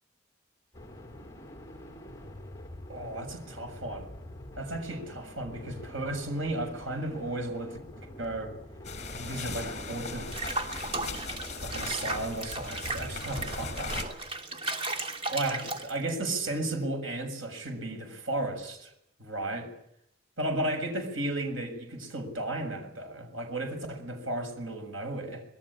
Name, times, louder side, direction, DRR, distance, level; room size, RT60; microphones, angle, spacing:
sound 1, 0.7-13.2, left 1 dB, 15° left, 3.6 m, -46 dB
voice 1, 2.9-4.1 4.6-8.5 9.2-10.4 11.6-14.0 15.3-18.9 19.2-19.7 20.4-25.4, right 2 dB, 90° right, 5 dB, 7.1 m, -34 dB
sound 2, 8.8-14.0, left 3 dB, 35° left, 6.3 m, -38 dB
Water / Bathtub (filling or washing), 10.3-16.2, right 2 dB, 30° right, 2.9 m, -36 dB
27.0 x 21.5 x 8.8 m, 0.77 s
head